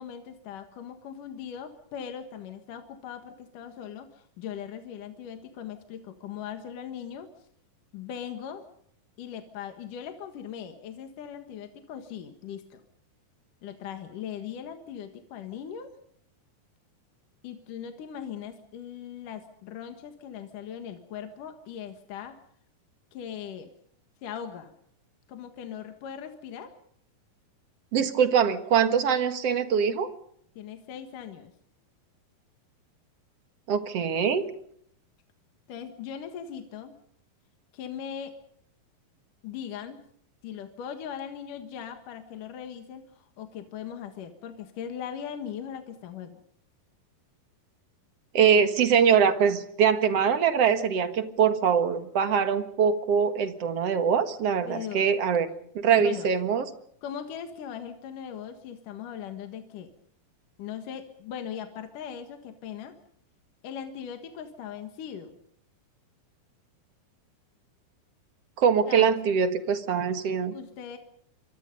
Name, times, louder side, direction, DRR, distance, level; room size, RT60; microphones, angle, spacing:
voice 1, 0.0-7.3 7.9-8.6 9.2-12.8 13.6-15.9 17.4-22.3 23.1-23.7 24.2-24.7 25.3-26.7 30.6-31.5 35.7-37.0 37.7-38.3 39.4-40.0 40.4-46.4 54.7-55.0 56.0-56.3 57.0-59.9 60.6-62.9 63.6-65.4 68.9-69.1 70.5-71.0, left 8 dB, 65° left, 6 dB, 3.0 m, -39 dB
voice 2, 27.9-30.1 33.7-34.5 48.3-55.5 55.7-56.7 68.6-70.5, right 7 dB, 50° right, 9 dB, 2.2 m, -23 dB
26.5 x 24.5 x 5.4 m, 0.67 s
omnidirectional pair, 4.3 m